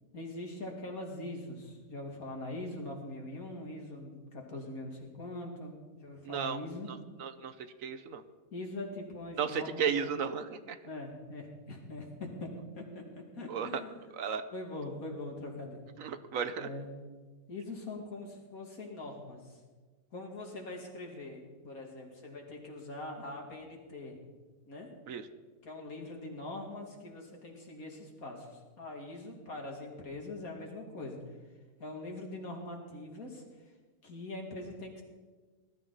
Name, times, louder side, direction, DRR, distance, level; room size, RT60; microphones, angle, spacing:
voice 1, 0.1-5.7 6.0-6.9 8.5-9.9 10.8-13.9 14.5-15.8 16.6-16.9 17.5-19.6 20.1-24.2 24.7-24.9 25.6-31.2 31.8-33.4 34.0-35.0, left 2 dB, 70° left, 1 dB, 2.8 m, -42 dB
voice 2, 6.2-6.6 6.9-7.5 7.8-8.2 9.4-10.8 13.5-13.8 14.1-14.4 16.0-16.7 25.1-25.3, right 7 dB, 70° right, 11 dB, 1.2 m, -34 dB
20.0 x 12.5 x 4.1 m, 1.4 s
omnidirectional pair, 1.5 m